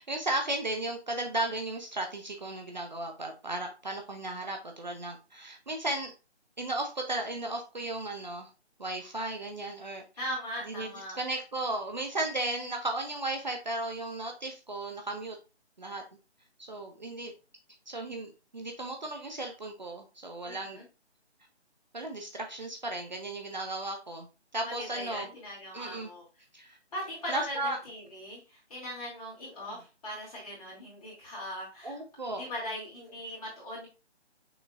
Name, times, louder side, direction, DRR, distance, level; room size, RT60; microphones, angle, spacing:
voice 1, 0.0-6.1 6.6-8.5 8.8-10.0 10.7-15.4 15.8-16.0 16.7-17.3 17.9-20.8 21.9-24.3 24.5-25.3 25.7-26.1 26.5-26.8 27.3-27.8 31.8-32.4, right 2 dB, 40° right, 3 dB, 0.7 m, -35 dB
voice 2, 10.2-11.2 20.4-20.8 24.6-26.2 26.9-32.0 32.3-33.9, equal, 30° left, -5 dB, 2.5 m, -39 dB
6.1 x 3.6 x 2.4 m, 0.31 s
figure-of-eight pair, 165°, 35 cm